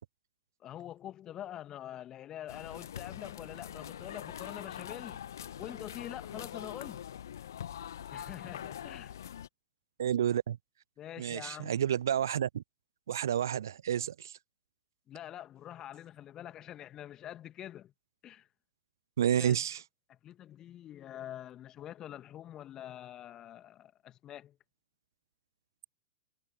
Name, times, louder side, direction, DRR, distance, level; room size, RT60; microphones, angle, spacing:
voice 1, 0.6-5.2 5.6-7.0 8.1-9.1 11.0-11.8 15.1-17.9 18.2-18.5 19.4-19.7 20.1-24.6, left 11 dB, 30° left, 1.9 m, -45 dB
sound 1, 2.5-9.5, left 10 dB, 65° left, 2.1 m, -43 dB
voice 2, 10.0-10.6 11.2-12.6 13.1-14.3 19.2-19.8, right 9 dB, 65° right, 0.4 m, -30 dB
figure-of-eight pair, 95°, 2 cm